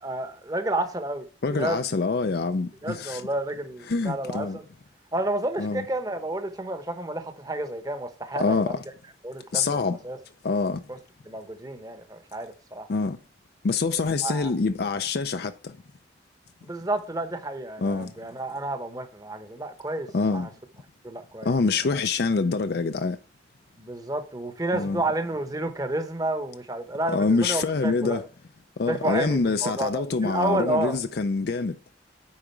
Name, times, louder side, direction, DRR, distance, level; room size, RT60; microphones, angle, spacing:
voice 1, 0.0-1.8 2.8-4.6 5.1-8.8 9.2-10.2 10.9-11.0 11.2-12.9 14.2-14.5 16.6-20.5 21.0-21.5 23.8-28.2 28.9-31.0, right 1 dB, 20° right, 1.0 m, -30 dB
voice 2, 1.4-3.2 3.9-4.6 5.6-5.9 8.4-8.8 9.5-10.0 10.4-10.8 12.9-13.2 13.6-15.8 17.8-18.1 20.1-20.5 21.4-23.2 24.7-25.0 27.1-28.3 28.8-31.8, left 4 dB, 55° left, 0.5 m, -25 dB
8.7 x 5.0 x 4.4 m
head